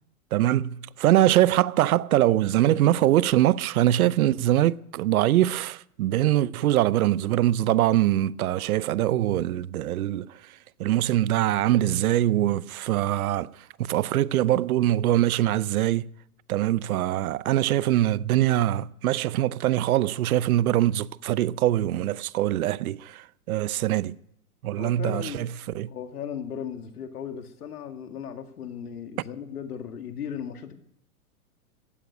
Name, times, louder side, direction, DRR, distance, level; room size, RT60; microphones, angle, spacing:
voice 1, 0.3-10.3 10.8-13.5 13.8-16.1 16.5-24.1 24.6-25.5 25.7-25.9, right 13 dB, 70° right, 0.7 m, -23 dB
voice 2, 24.8-25.4 25.9-30.8, left 8 dB, 90° left, 2.1 m, -36 dB
15.5 x 9.6 x 9.3 m
hypercardioid pair, 145°, 44 cm